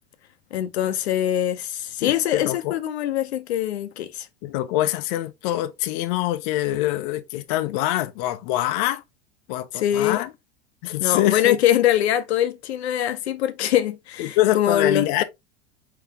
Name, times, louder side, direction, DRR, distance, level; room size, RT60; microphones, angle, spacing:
voice 1, 0.5-4.3 9.7-10.2 11.0-15.2, left 11 dB, 85° left, 0.8 m, -23 dB
voice 2, 2.0-2.7 4.4-9.0 9.5-10.3 10.8-11.6 14.2-15.2, left 14 dB, 55° left, 0.6 m, -24 dB
4.7 x 3.8 x 2.8 m
hypercardioid pair, 110°, 32 cm